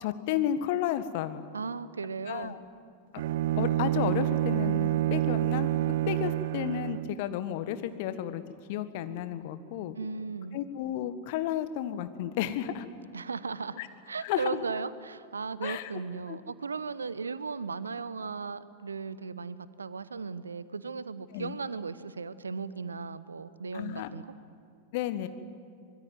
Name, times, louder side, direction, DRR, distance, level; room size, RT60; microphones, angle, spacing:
voice 1, 0.0-1.4 2.3-2.6 3.6-5.7 6.1-8.4 8.7-10.0 10.5-12.9 13.8-13.9 14.2-14.6 15.6-15.9 16.3-16.4 21.3-21.6 23.7-24.1 24.9-25.3, left 11 dB, 50° left, 11 dB, 1.5 m, -32 dB
voice 2, 1.5-2.6 10.0-10.6 13.1-13.8 14.1-24.3, right 4 dB, 75° right, 17 dB, 0.9 m, -36 dB
Bowed string instrument, 3.2-7.2, right 14 dB, 55° right, 0.5 m, -28 dB
24.0 x 21.5 x 9.4 m, 2.4 s
figure-of-eight pair, 90°, 0 cm